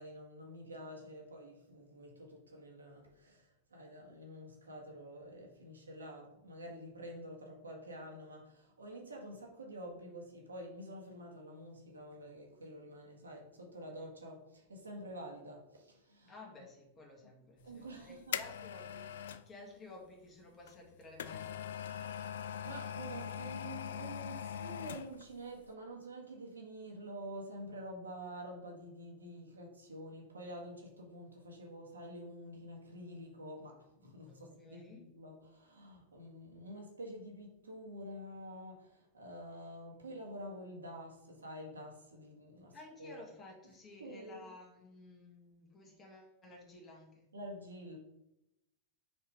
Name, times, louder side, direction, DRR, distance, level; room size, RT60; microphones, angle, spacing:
voice 1, 0.0-16.3 17.6-18.4 21.9-43.2 44.0-44.4 47.3-48.0, right 1 dB, 75° right, 0 dB, 1.6 m, -48 dB
voice 2, 16.3-21.6 34.3-35.1 42.7-47.3, left 2 dB, 25° left, -1 dB, 1.8 m, -54 dB
sound 1, 17.7-19.5 20.7-25.3 25.6-25.7, left 9 dB, 60° left, 0.3 m, -42 dB
5.0 x 4.6 x 4.6 m, 0.87 s
figure-of-eight pair, 90°, 0 cm